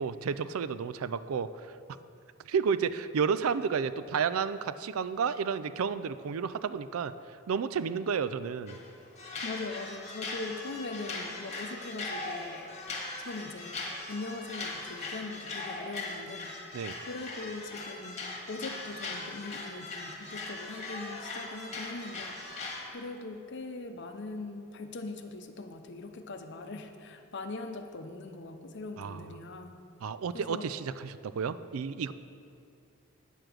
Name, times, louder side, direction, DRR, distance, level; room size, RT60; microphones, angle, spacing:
voice 1, 0.0-1.8 2.4-7.1 7.5-8.8 16.7-16.9 29.0-29.2 30.0-32.1, right 6 dB, 80° right, 14 dB, 0.4 m, -31 dB
sound 1, 8.7-8.9 9.2-22.9, left 2 dB, 30° left, 1.4 m, -40 dB
voice 2, 9.4-16.5 17.1-22.4 22.9-29.8 30.3-30.7, left 3 dB, 55° left, 6 dB, 0.7 m, -41 dB
9.0 x 6.8 x 6.2 m, 2.4 s
head